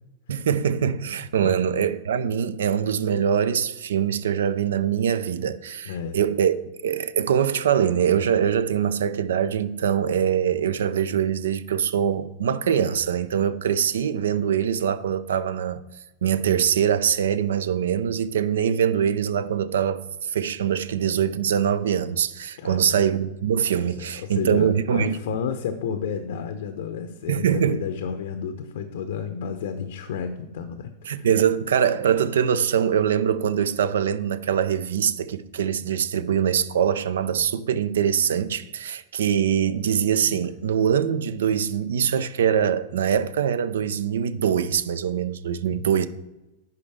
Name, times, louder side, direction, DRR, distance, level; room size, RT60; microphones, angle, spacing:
voice 1, 0.3-6.6 6.8-15.8 16.2-25.4 27.3-27.8 31.1-46.1, right 8 dB, 75° right, 0.4 m, -23 dB
voice 2, 5.8-6.2 18.7-18.8 22.6-22.9 23.9-31.3 40.3-40.5 45.7-45.9, left 7 dB, 70° left, 0.6 m, -32 dB
10.5 x 4.0 x 3.5 m
hypercardioid pair, 105°, 0 cm